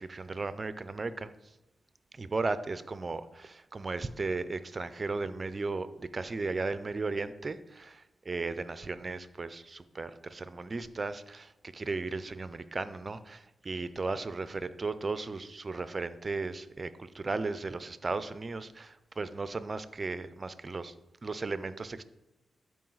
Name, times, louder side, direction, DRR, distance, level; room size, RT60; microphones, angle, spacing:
voice 1, 0.0-1.3 2.1-20.9 21.2-22.0, right 3 dB, 40° right, 13 dB, 0.6 m, -36 dB
12.5 x 4.9 x 4.0 m, 0.93 s
cardioid pair, 55°, 0 cm